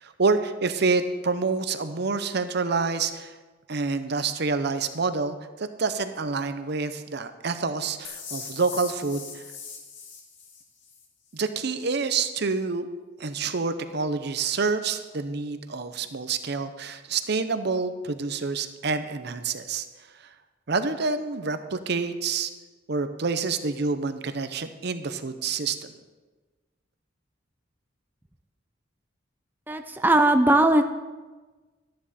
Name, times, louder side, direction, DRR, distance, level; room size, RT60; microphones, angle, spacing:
voice 1, 0.0-3.3 3.7-9.4 11.3-12.9 13.2-19.9 20.7-22.5 22.9-25.9, right 4 dB, 60° right, 10 dB, 0.8 m, -27 dB
sound 1, 8.0-11.1, left 5 dB, 80° left, 2.0 m, -40 dB
voice 2, 29.7-30.8, right 1 dB, 10° right, 5 dB, 0.5 m, -19 dB
13.5 x 10.5 x 4.3 m, 1.3 s
head